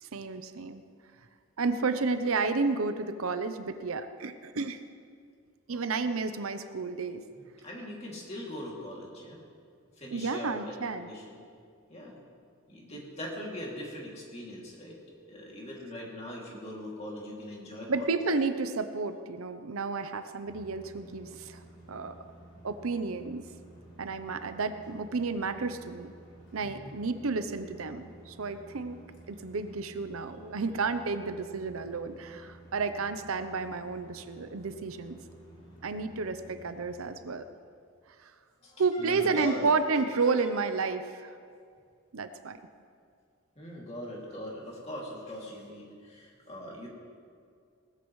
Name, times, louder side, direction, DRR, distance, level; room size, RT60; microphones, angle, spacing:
voice 1, 0.0-0.8 1.6-4.8 5.7-7.2 10.1-11.1 17.9-21.6 21.9-22.2 22.6-23.5 24.0-26.1 26.5-29.0 29.3-35.2 35.8-37.4 38.8-41.3 42.1-42.6, right 4 dB, 80° right, 10 dB, 0.7 m, -31 dB
voice 2, 5.7-6.1 7.4-9.4 10.0-11.4 11.9-12.2 12.7-15.0 15.3-18.1 26.6-26.9 38.6-40.5 43.6-46.9, equal, 30° left, -3 dB, 2.6 m, -41 dB
sound 1, 20.4-37.1, right 1 dB, 60° left, 3.4 m, -52 dB
19.5 x 13.5 x 3.2 m, 2.2 s
head